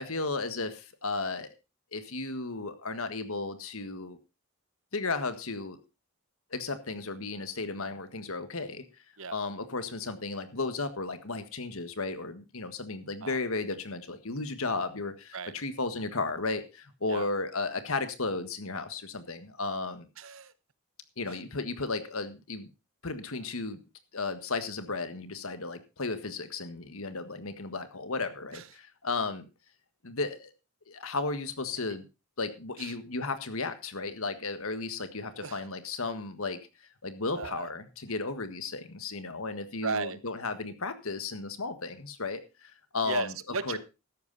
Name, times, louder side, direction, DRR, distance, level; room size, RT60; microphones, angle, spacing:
voice 1, 0.0-1.5 1.9-4.2 4.9-5.8 6.5-8.8 9.3-20.1 21.2-22.7 23.0-23.8 24.1-29.5 30.0-30.5 30.9-32.0 32.4-36.6 37.0-43.3 43.7-43.8, left 3 dB, 70° left, 10 dB, 1.6 m, -34 dB
voice 2, 20.2-20.5 21.3-21.4 28.5-28.7 32.8-33.0 35.3-35.7 37.3-37.7 39.8-40.2 43.0-43.8, right 4 dB, 60° right, 15 dB, 1.0 m, -35 dB
13.0 x 11.0 x 4.1 m, 0.29 s
head